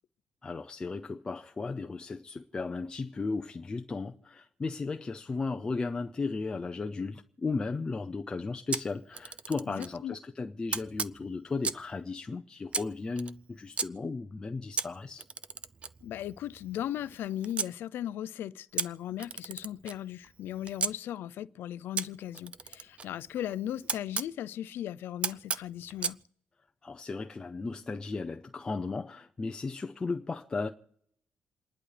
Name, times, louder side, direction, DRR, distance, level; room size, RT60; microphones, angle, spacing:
voice 1, 0.4-15.2 26.8-30.7, left 4 dB, 20° left, 0.5 m, -35 dB
Camera, 8.7-10.0 10.7-11.9 12.7-13.9 14.8-17.7 18.8-20.9 22.0-24.3 25.2-26.2, right 5 dB, 35° right, 0.5 m, -36 dB
voice 2, 9.7-10.1 16.0-26.2, left 11 dB, 75° left, 0.5 m, -37 dB
28.5 x 11.0 x 3.3 m
cardioid pair, 140°, 4 cm